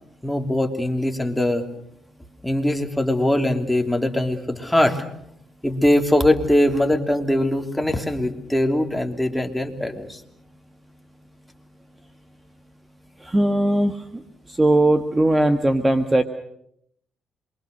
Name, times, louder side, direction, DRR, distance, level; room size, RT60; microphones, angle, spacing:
voice 1, 0.2-1.7 2.4-5.0 5.6-10.2, left 1 dB, 5° left, 4 dB, 3.0 m, -21 dB
voice 2, 13.2-14.2 14.5-16.2, right 1 dB, 15° right, 7 dB, 1.5 m, -19 dB
27.5 x 23.5 x 6.7 m, 0.74 s
cardioid pair, 90°, 0 cm